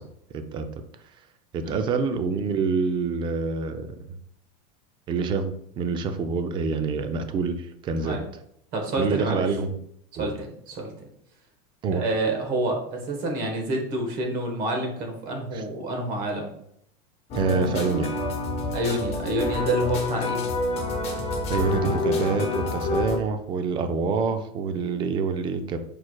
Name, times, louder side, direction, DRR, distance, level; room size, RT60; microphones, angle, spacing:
voice 1, 0.3-0.7 1.5-4.0 5.1-8.2 9.0-9.7 10.2-10.3 11.8-12.0 15.5-15.6 17.3-18.1 21.5-25.8, right 5 dB, 25° right, 8 dB, 0.4 m, -26 dB
voice 2, 8.7-9.4 10.1-10.9 11.9-16.5 18.7-20.4, right 1 dB, 40° right, 2 dB, 1.2 m, -28 dB
sound 1, 17.3-23.2, left 2 dB, 30° left, 0.8 m, -27 dB
4.6 x 4.4 x 2.2 m, 0.70 s
supercardioid pair, 150°, 21 cm